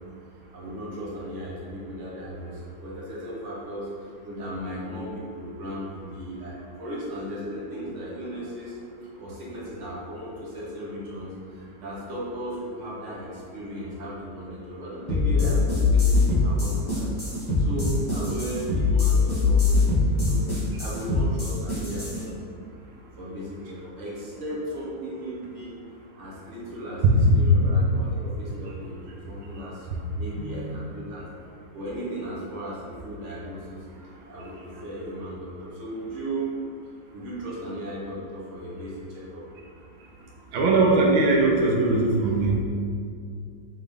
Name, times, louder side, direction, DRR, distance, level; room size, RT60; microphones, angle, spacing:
voice 1, 0.5-3.9 4.2-17.1 17.6-22.3 23.2-25.8 26.1-31.2 31.7-33.9 34.3-36.5 37.1-39.4, right 1 dB, 50° right, -6 dB, 1.0 m, -36 dB
sound 1, 15.1-22.2, left 4 dB, 25° left, 0.5 m, -22 dB
voice 2, 30.4-30.7 40.5-42.6, right 3 dB, 80° right, -1 dB, 1.4 m, -21 dB
3.8 x 3.7 x 3.3 m, 2.4 s
omnidirectional pair, 2.1 m